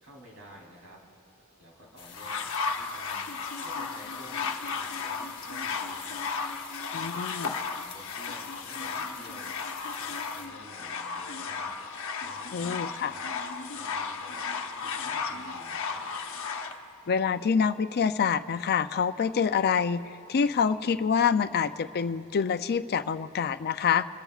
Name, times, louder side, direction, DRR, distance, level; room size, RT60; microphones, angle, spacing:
voice 1, 0.0-1.0 1.6-3.2 3.6-6.2 6.9-9.5 10.0-11.8 12.2-13.3 13.7-14.5 14.8-16.0, equal, 65° right, -2 dB, 3.4 m, -51 dB
sound 1, 2.0-10.5, left 6 dB, 25° left, 1.4 m, -48 dB
sound 2, 2.1-16.7 17.6-17.7, left 5 dB, 65° left, 0.9 m, -34 dB
voice 2, 6.9-7.6 12.5-13.1 17.1-20.0 20.3-24.1, left 6 dB, 45° left, 12 dB, 0.4 m, -26 dB
29.5 x 14.0 x 2.4 m, 2.5 s
head